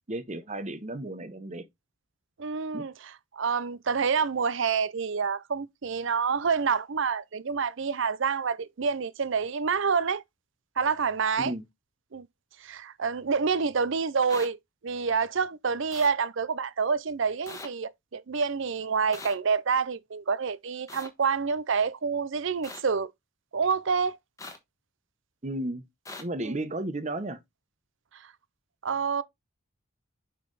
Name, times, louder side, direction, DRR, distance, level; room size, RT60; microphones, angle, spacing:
voice 1, 0.1-1.6 2.7-2.9 11.4-11.6 25.4-25.9 26.2-27.4, right 1 dB, 35° right, 0.8 m, -33 dB
voice 2, 2.4-10.2 10.8-11.5 12.1-12.3 12.6-23.1 23.5-24.2 26.4-26.6 28.1-28.3 28.8-29.2, right 5 dB, 60° right, 0.5 m, -28 dB
sound 1, 14.3-14.5 15.9-16.1 17.5-17.7 19.1-19.3 20.9-21.1 22.6-22.8 24.4-24.6 26.1-26.2, left 2 dB, 15° left, 1.2 m, -41 dB
5.6 x 5.2 x 3.9 m
head